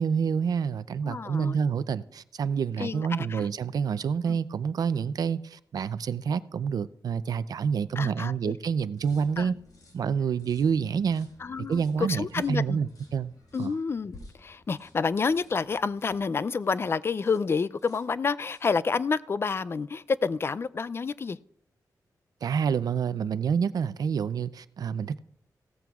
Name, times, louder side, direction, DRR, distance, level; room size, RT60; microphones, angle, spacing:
voice 1, 0.0-9.6 9.9-11.3 11.7-13.3 13.6-13.7 22.4-25.2, right 6 dB, 70° right, 0.5 m, -28 dB
voice 2, 1.0-1.6 2.8-3.5 4.3-4.4 8.0-8.5 9.4-9.5 11.4-12.8 13.5-21.4, left 5 dB, 35° left, 0.3 m, -29 dB
sound 1, 8.9-16.8 17.2-17.5 17.8-18.8, left 2 dB, 65° left, 4.8 m, -54 dB
16.5 x 13.5 x 2.4 m
wide cardioid pair, 125°, 7 cm